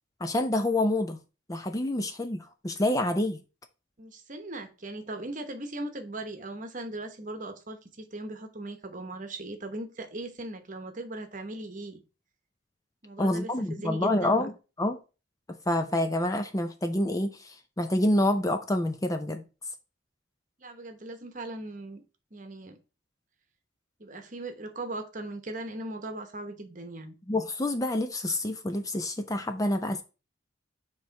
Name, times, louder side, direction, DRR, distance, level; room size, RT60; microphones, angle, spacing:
voice 1, 0.2-1.2 1.5-3.4 13.2-14.5 14.8-15.0 15.5-19.4 27.3-30.0, left 1 dB, 15° left, 0.5 m, -27 dB
voice 2, 4.0-12.0 13.0-14.4 20.6-22.0 22.3-22.8 24.0-27.2, right 2 dB, 40° right, 1.0 m, -39 dB
7.3 x 3.1 x 5.7 m
head